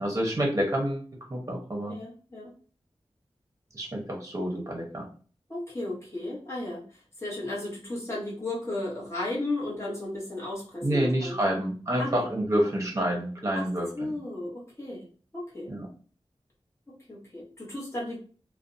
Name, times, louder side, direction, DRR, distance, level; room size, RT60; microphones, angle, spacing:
voice 1, 0.0-1.9 3.7-5.1 10.8-14.2 15.7-15.9, right 1 dB, 30° right, 0 dB, 0.8 m, -28 dB
voice 2, 1.9-2.5 5.5-11.5 12.0-12.3 13.5-13.7 13.9-15.0 15.3-15.7 16.9-18.2, left 2 dB, 25° left, -6 dB, 1.1 m, -35 dB
2.5 x 2.1 x 2.5 m, 0.41 s
wide cardioid pair, 65°, 11 cm